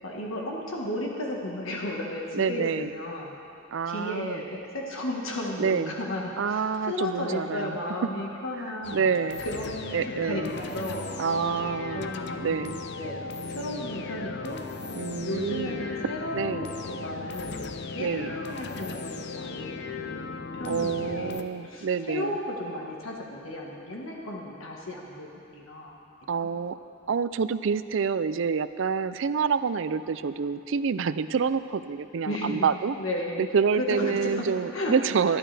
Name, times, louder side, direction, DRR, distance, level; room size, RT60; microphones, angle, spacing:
voice 1, 0.0-3.3 3.8-9.1 9.4-11.5 11.9-13.2 13.5-14.6 15.3-17.6 17.9-26.5 32.2-32.7 33.0-33.4 33.8-35.0 35.2-35.4, left 1 dB, 80° left, -1 dB, 1.5 m, -34 dB
voice 2, 2.3-2.9 3.7-4.4 5.6-6.0 6.4-7.8 8.9-9.4 9.9-10.5 11.2-12.1 12.4-12.8 14.9-15.8 16.3-16.7 18.0-18.3 20.7-22.3 26.3-26.8 27.1-33.0 33.4-35.4, right 6 dB, 65° right, 13 dB, 0.4 m, -27 dB
sound 1, 8.8-21.4, left 4 dB, 60° left, 0.6 m, -36 dB
21.0 x 12.0 x 3.4 m, 2.6 s
head